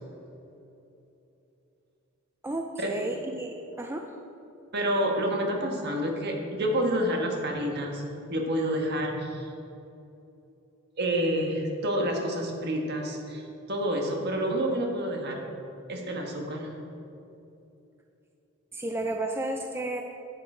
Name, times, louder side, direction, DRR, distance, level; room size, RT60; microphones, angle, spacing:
voice 1, 2.4-4.1 18.7-20.0, right 1 dB, 10° right, 3 dB, 0.4 m, -32 dB
voice 2, 4.7-9.5 11.0-15.4 15.9-16.7, equal, 55° right, 1 dB, 1.5 m, -28 dB
10.5 x 6.8 x 4.9 m, 2.8 s
head